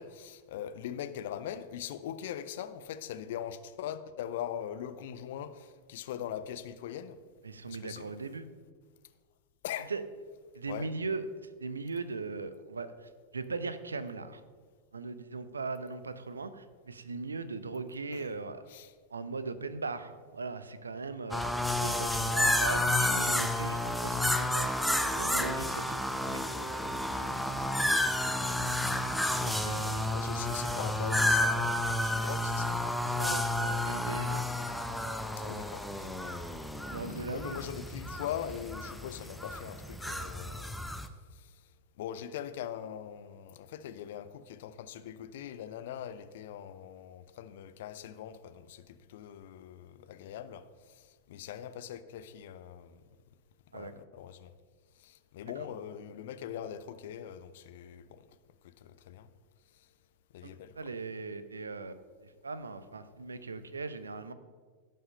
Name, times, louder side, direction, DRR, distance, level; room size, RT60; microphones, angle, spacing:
voice 1, 0.0-7.2 7.7-8.1 9.6-9.9 10.7-10.9 18.1-18.3 18.7-18.9 22.0-22.4 30.1-32.8 35.4-36.4 37.3-40.9 41.3-41.6 42.0-53.0 53.7-54.5 55.0-58.2 58.6-59.3 60.3-60.9, left 10 dB, 55° left, 11 dB, 0.7 m, -41 dB
voice 2, 7.4-8.5 9.9-10.0 10.5-11.2 11.6-12.9 13.3-14.4 14.9-18.6 19.1-21.4 21.8-24.7 25.2-26.5 29.4-30.1 33.2-34.4 36.9-37.6 53.7-53.9 60.4-62.0 62.4-64.3, right 4 dB, 75° right, 12 dB, 0.7 m, -39 dB
sound 1, 21.3-41.1, left 1 dB, ahead, 0.7 m, -31 dB
16.0 x 5.6 x 5.5 m, 1.5 s
figure-of-eight pair, 90°, 0 cm